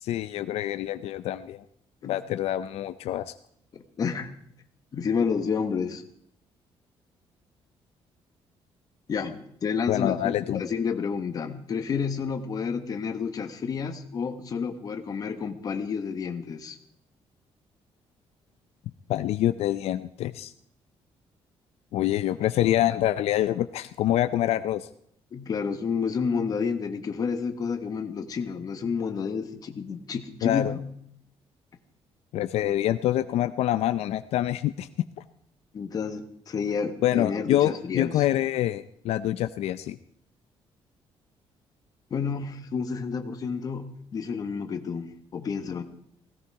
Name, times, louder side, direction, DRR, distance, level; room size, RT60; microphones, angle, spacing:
voice 1, 0.0-1.6 2.0-3.3 9.9-10.6 19.1-20.5 21.9-24.9 30.4-30.7 32.3-35.1 37.0-40.0, left 13 dB, 80° left, 12 dB, 0.5 m, -26 dB
voice 2, 3.7-4.3 4.9-6.0 9.1-16.8 25.3-30.9 35.7-38.2 42.1-45.8, left 6 dB, 35° left, 7 dB, 1.3 m, -30 dB
17.0 x 16.0 x 4.8 m, 0.68 s
cardioid pair, 175°, 10 cm